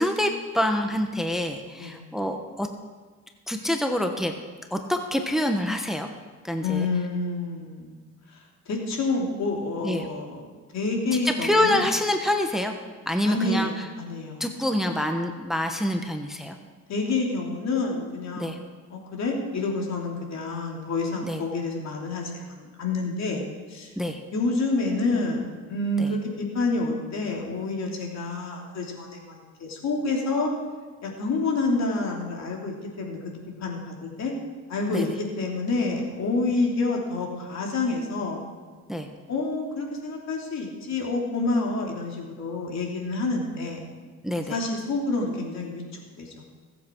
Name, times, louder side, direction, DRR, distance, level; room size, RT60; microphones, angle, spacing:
voice 1, 0.0-2.7 3.5-4.3 4.7-6.1 6.4-6.9 9.8-10.0 11.1-12.7 13.1-13.9 14.4-16.6 18.4-18.6 21.2-21.4 24.0-24.2 26.0-26.1 34.9-35.1 38.9-39.1 44.2-44.6, left 1 dB, ahead, 4 dB, 1.1 m, -26 dB
voice 2, 6.6-8.0 8.3-8.4 8.7-10.5 10.7-11.8 13.2-14.5 16.9-18.5 18.9-23.9 24.3-30.5 31.0-33.2 33.6-34.3 34.7-38.4 39.3-43.8 44.5-46.3, left 3 dB, 60° left, -1 dB, 3.1 m, -28 dB
21.5 x 7.9 x 4.6 m, 1.4 s
cardioid pair, 90°, 30 cm